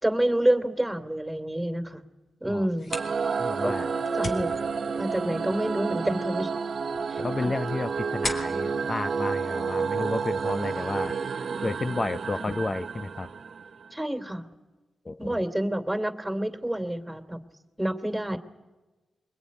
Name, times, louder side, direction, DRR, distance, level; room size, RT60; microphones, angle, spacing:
voice 1, 0.0-2.0 2.4-2.9 3.6-3.7 4.1-4.5 4.9-6.5 7.1-7.5 12.4-12.5 13.9-14.5 15.2-17.4 17.8-18.4, right 1 dB, 10° right, 8 dB, 2.9 m, -28 dB
sound 1, 2.6-10.1, left 2 dB, 60° left, 3.6 m, -41 dB
sound 2, 2.9-13.8, right 5 dB, 65° right, 0.9 m, -30 dB
voice 2, 3.4-3.9 7.2-11.1 11.6-13.3 15.0-15.4, left 2 dB, 40° left, 11 dB, 0.7 m, -31 dB
24.0 x 20.5 x 9.7 m, 1.2 s
supercardioid pair, 40°, 0 cm